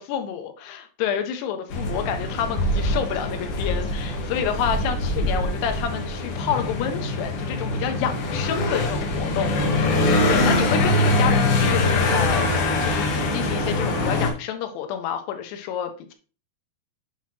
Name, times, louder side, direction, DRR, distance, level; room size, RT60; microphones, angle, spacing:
voice 1, 0.0-16.1, left 8 dB, 85° left, 7 dB, 3.0 m, -29 dB
sound 1, 1.7-14.3, left 2 dB, 70° left, 3.1 m, -23 dB
7.8 x 6.0 x 2.8 m, 0.37 s
omnidirectional pair, 4.7 m